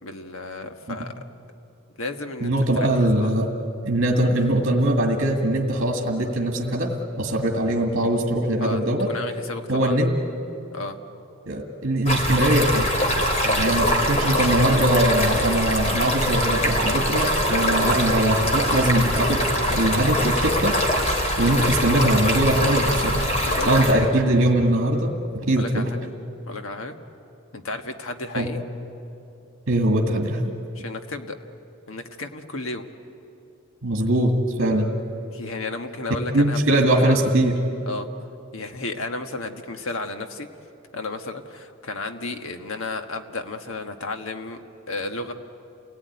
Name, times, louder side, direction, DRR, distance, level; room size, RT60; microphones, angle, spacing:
voice 1, 0.0-1.1 2.0-3.3 8.6-10.1 10.7-11.0 13.4-13.6 23.4-24.1 25.6-26.1 26.5-26.9 27.5-28.6 30.7-31.4 31.9-32.8 35.3-37.1 37.9-38.1 38.5-40.5 40.9-45.3, left 2 dB, 70° left, 6 dB, 1.4 m, -33 dB
voice 2, 2.4-3.5 3.9-9.1 9.7-10.1 11.5-12.9 13.6-20.8 21.4-23.3 23.7-25.9 28.3-28.5 29.7-30.4 33.8-34.9 36.3-37.6, right 1 dB, 55° right, 2 dB, 1.9 m, -21 dB
Stream, 12.1-23.9, equal, 30° left, 2.9 m, -23 dB
29.0 x 18.0 x 9.4 m, 2.8 s
head